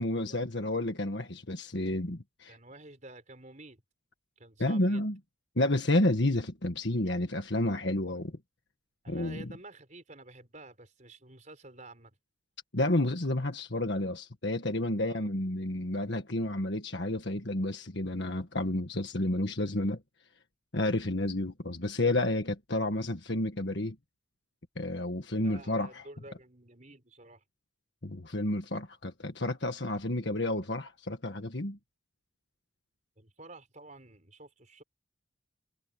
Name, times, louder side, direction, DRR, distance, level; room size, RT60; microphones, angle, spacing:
voice 1, 0.0-2.6 4.6-5.2 5.6-8.3 9.1-9.5 12.7-20.0 20.7-24.0 24.8-26.0 28.0-31.8, left 1 dB, 55° left, 1.7 m, -30 dB
voice 2, 2.5-3.8 4.4-5.1 9.0-12.2 15.0-15.3 25.4-27.4 33.2-34.8, right 2 dB, 35° right, 5.2 m, -50 dB
head